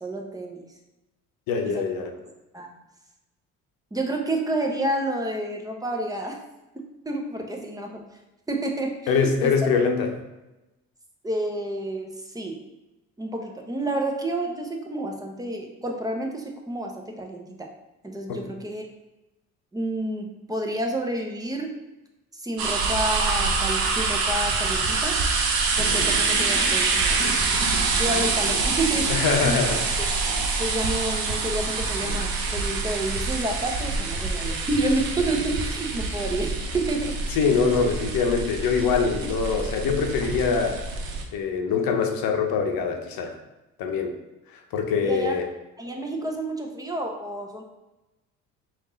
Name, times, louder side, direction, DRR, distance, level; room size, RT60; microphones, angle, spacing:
voice 1, 0.0-0.7 1.7-1.8 2.5-2.7 3.9-6.4 6.7-8.0 8.5-9.5 11.2-12.6 13.2-17.7 18.0-18.8 19.7-21.8 22.3-25.2 25.8-27.3 28.0-29.6 30.6-37.2 39.2-39.3 45.0-45.4 45.8-47.6, right 1 dB, 10° right, 2 dB, 0.8 m, -29 dB
voice 2, 1.5-2.1 9.1-10.1 18.3-18.4 29.1-29.9 37.3-40.8 41.3-43.3 43.8-44.1 44.7-45.5, left 5 dB, 60° left, 4 dB, 0.8 m, -23 dB
sound 1, 22.6-41.2, right 4 dB, 60° right, 0.8 m, -26 dB
Thunder, 25.3-34.2 34.4-38.7 39.0-39.2 40.3-41.0, left 2 dB, 35° left, 1.2 m, -41 dB
3.6 x 2.6 x 3.9 m, 1.0 s
hypercardioid pair, 65°, 39 cm